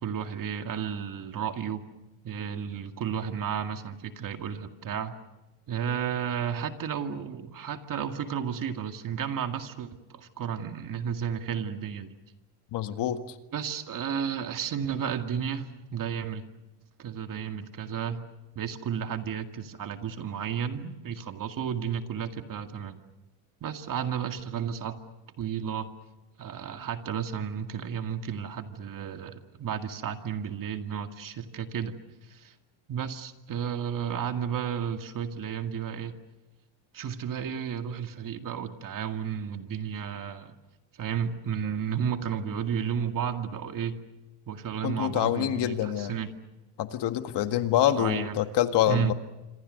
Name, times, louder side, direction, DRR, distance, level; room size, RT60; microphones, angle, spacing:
voice 1, 0.0-1.8 2.2-5.2 5.7-12.1 13.5-16.5 17.0-18.3 18.6-23.0 23.6-25.0 25.4-25.9 26.4-31.9 32.2-32.6 32.9-36.2 36.9-40.6 41.0-44.0 44.5-46.3 48.0-48.3 48.9-49.1, right 8 dB, 45° right, 6 dB, 2.2 m, -32 dB
voice 2, 12.7-13.2 44.8-46.2 46.8-49.1, left 11 dB, 60° left, 9 dB, 1.8 m, -26 dB
26.5 x 26.5 x 6.6 m, 1.1 s
cardioid pair, 120°, 47 cm